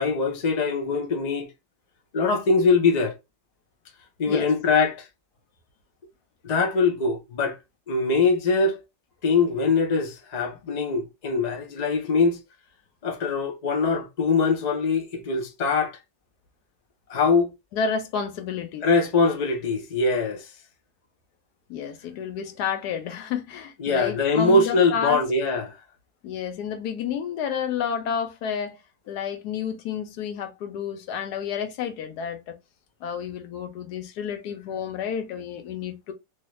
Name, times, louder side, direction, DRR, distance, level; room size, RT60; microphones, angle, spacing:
voice 1, 0.0-1.5 2.1-3.1 4.2-5.1 6.4-7.6 7.9-8.8 9.2-12.4 13.0-15.9 17.1-17.5 18.8-20.5 23.8-25.8, left 4 dB, 45° left, 0.5 m, -22 dB
voice 2, 17.7-18.9 21.7-25.2 26.2-28.8 29.1-32.5 33.0-36.1, left 7 dB, 70° left, 1.2 m, -30 dB
3.2 x 2.3 x 3.1 m
omnidirectional pair, 1.9 m